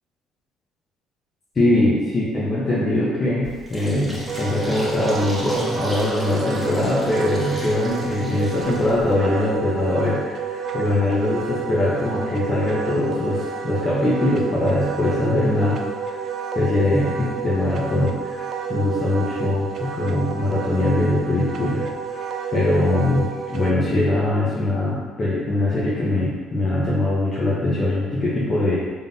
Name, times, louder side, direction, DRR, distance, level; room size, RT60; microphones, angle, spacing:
voice 1, 1.5-16.2 16.5-18.4 18.7-21.9 22.1-22.2 22.5-28.8, left 1 dB, 40° left, -8 dB, 0.9 m, -22 dB
Fill (with liquid), 3.4-9.1, right 1 dB, 5° right, 1.4 m, -36 dB
Wind instrument woodwind instrument, 4.3-23.7, right 5 dB, 55° right, 0.3 m, -30 dB
3.8 x 3.6 x 2.7 m, 1.4 s
hypercardioid pair, 60°, 0 cm